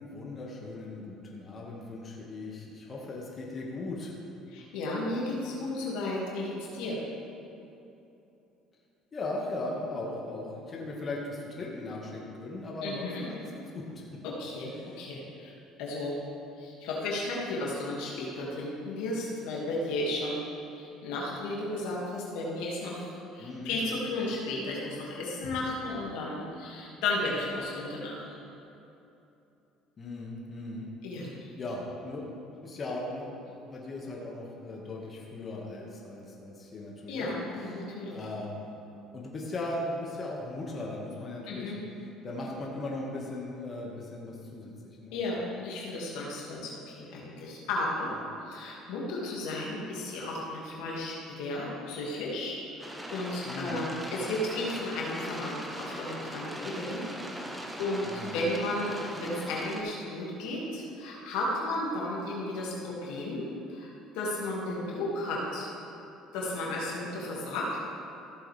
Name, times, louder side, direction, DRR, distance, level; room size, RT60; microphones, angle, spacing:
voice 1, 0.0-4.1 9.1-14.1 23.4-23.8 30.0-30.9 31.2-32.3 32.6-37.3 38.1-38.7 39.1-41.7 42.2-45.2 48.1-48.2 53.4-53.9 58.0-58.4, left 2 dB, 40° left, -3 dB, 2.0 m, -38 dB
voice 2, 4.5-7.0 12.8-13.3 14.2-15.5 15.8-16.2 16.6-20.4 20.7-28.4 31.0-31.4 37.1-38.2 41.5-41.8 45.1-48.1 48.4-57.5 57.8-63.4 63.7-63.9 64.1-65.7 66.3-67.8, left 2 dB, 80° left, -4 dB, 2.3 m, -34 dB
sound 1, 52.8-59.8, equal, 10° right, 1.4 m, -40 dB
15.0 x 7.6 x 3.5 m, 2.8 s
supercardioid pair, 75°, 0 cm